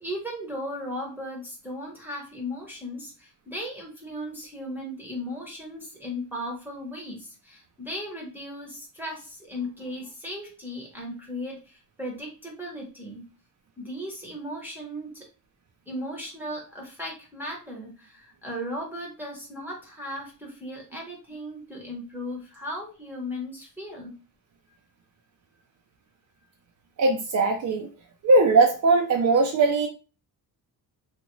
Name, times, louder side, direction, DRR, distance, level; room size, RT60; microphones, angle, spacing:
voice 1, 0.0-13.2 13.8-15.2 15.9-24.1, equal, 5° right, 0.9 m, -36 dB
voice 2, 27.0-27.9 28.2-29.9, right 3 dB, 45° right, 0.5 m, -20 dB
2.9 x 2.5 x 3.0 m
cardioid pair, 110°, 40 cm